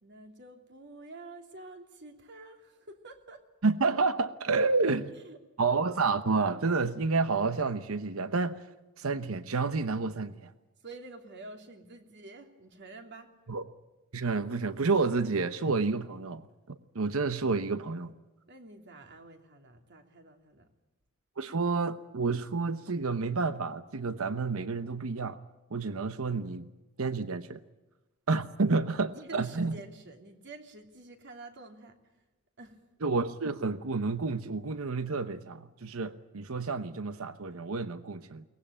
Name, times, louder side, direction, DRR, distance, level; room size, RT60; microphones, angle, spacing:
voice 1, 0.0-3.4 5.1-5.4 10.8-13.3 18.5-20.7 29.1-32.0 32.6-32.8, right 2 dB, 55° right, 5 dB, 3.1 m, -48 dB
voice 2, 3.6-5.0 5.6-8.6 9.0-10.5 13.5-13.6 14.1-18.1 21.4-25.4 25.7-26.7 27.0-27.6 28.3-29.7 33.0-38.4, right 4 dB, 75° right, 12 dB, 0.9 m, -30 dB
23.0 x 19.5 x 8.7 m, 1.1 s
head